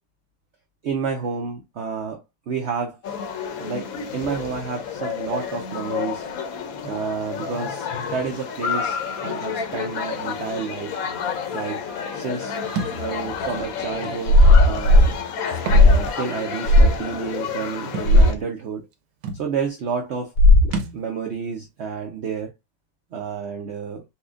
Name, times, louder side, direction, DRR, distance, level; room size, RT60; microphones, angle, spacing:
voice 1, 0.8-3.2 3.6-6.2 6.8-9.0 9.2-11.0 11.5-11.8 12.1-12.6 12.9-14.4 14.6-15.0 15.7-18.9 19.3-20.3 20.9-22.5 23.1-24.0, right 6 dB, 65° right, 0.7 m, -30 dB
sound 1, 3.0-18.3, left 6 dB, 65° left, 1.0 m, -30 dB
Thump thud, 12.8-13.0 14.0-14.2 15.5-15.9 16.3-16.4 17.9-18.1 18.9-19.0 19.2-19.5 20.7-21.0, right 4 dB, 90° right, 1.3 m, -29 dB
sound 2, 14.3-15.1 15.7-16.1 16.7-17.0 18.1-18.4 20.4-20.8, left 1 dB, 80° left, 1.3 m, -13 dB
4.2 x 2.3 x 2.4 m
omnidirectional pair, 1.8 m